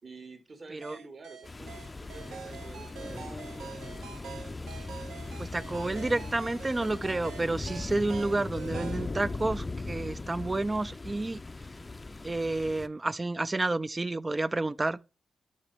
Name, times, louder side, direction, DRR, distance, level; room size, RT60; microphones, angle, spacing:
voice 1, 0.0-4.0, right 3 dB, 50° right, 2.0 m, -49 dB
sound 1, 0.8-9.1, right 6 dB, 90° right, 1.0 m, -45 dB
sound 2, 1.4-12.9, left 3 dB, 30° left, 0.6 m, -39 dB
voice 2, 5.4-11.4 12.2-15.0, right 2 dB, 30° right, 0.5 m, -30 dB
12.0 x 4.9 x 3.5 m
cardioid pair, 55°, 0 cm